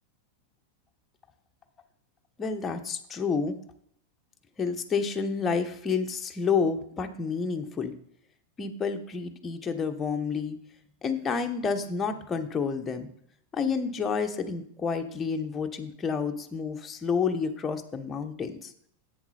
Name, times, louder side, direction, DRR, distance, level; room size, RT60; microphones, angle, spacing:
voice 1, 2.4-3.6 4.6-7.9 8.6-10.6 11.0-13.1 13.5-18.7, left 5 dB, 20° left, 5 dB, 1.2 m, -29 dB
10.0 x 8.5 x 4.2 m, 0.68 s
figure-of-eight pair, 90°, 0 cm